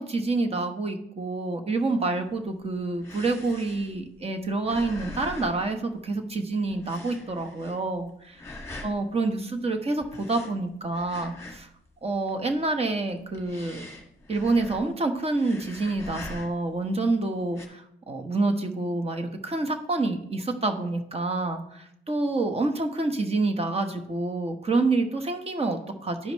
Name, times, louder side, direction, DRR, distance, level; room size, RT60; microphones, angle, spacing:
voice 1, 0.0-8.1 8.8-11.7 12.0-13.9 14.3-26.3, right 3 dB, 30° right, 5 dB, 1.2 m, -27 dB
sound 1, 2.3-6.4 6.7-8.0 8.3-9.0 10.0-11.8 12.1-12.7 13.1-15.0 15.3-16.8 17.4-17.7, left 2 dB, 15° left, 1.8 m, -43 dB
12.0 x 5.1 x 3.1 m, 0.74 s
cardioid pair, 90°, 20 cm